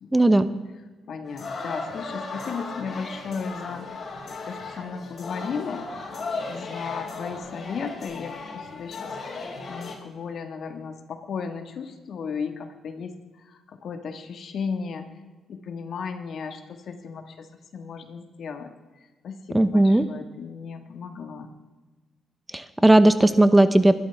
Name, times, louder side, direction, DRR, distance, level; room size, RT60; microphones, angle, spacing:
voice 1, 0.1-0.5 19.5-20.0 22.5-24.0, right 1 dB, 10° right, 12 dB, 0.8 m, -17 dB
voice 2, 1.1-3.9 4.4-5.9 6.5-9.2 9.7-15.1 15.5-17.5 17.7-21.5, left 5 dB, 65° left, 6 dB, 1.7 m, -35 dB
sound 1, 1.3-9.9, left 3 dB, 50° left, 6.0 m, -36 dB
23.5 x 12.5 x 3.5 m, 1.3 s
cardioid pair, 85°, 0 cm